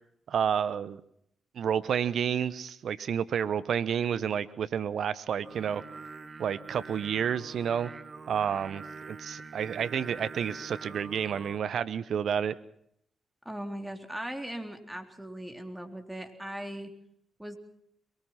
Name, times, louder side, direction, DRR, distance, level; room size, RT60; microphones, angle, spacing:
voice 1, 0.3-1.0 1.6-5.8 6.4-7.9 8.3-12.6, right 8 dB, 65° right, 16 dB, 1.0 m, -30 dB
Singing, 5.4-11.6, right 4 dB, 40° right, 1.7 m, -45 dB
voice 2, 13.5-16.9 17.4-17.6, right 1 dB, 10° right, 5 dB, 3.8 m, -39 dB
23.0 x 19.5 x 5.9 m, 0.69 s
hypercardioid pair, 45°, 0 cm